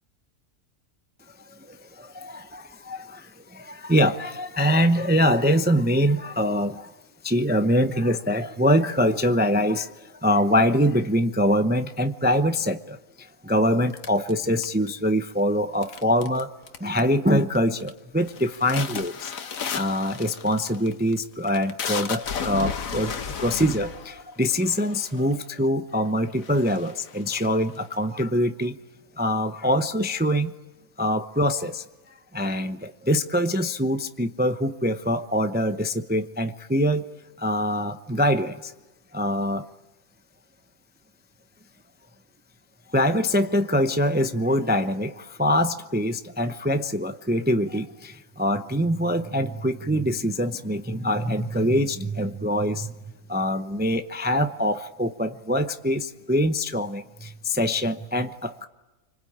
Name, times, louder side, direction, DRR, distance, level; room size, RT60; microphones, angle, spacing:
voice 1, 1.4-6.9 7.2-16.5 16.8-19.3 19.7-23.1 23.4-28.8 29.2-30.5 31.0-31.8 32.3-37.1 37.4-38.7 39.1-39.7 42.9-52.9 53.3-58.7, equal, 10° right, 8 dB, 0.5 m, -24 dB
sound 1, 14.0-15.1 15.8-16.4 16.7-17.2 17.6-17.9 18.3-25.3 26.0-26.1 26.4-28.0, left 6 dB, 70° left, 1.5 m, -34 dB
26.5 x 25.5 x 8.7 m, 1.1 s
omnidirectional pair, 1.5 m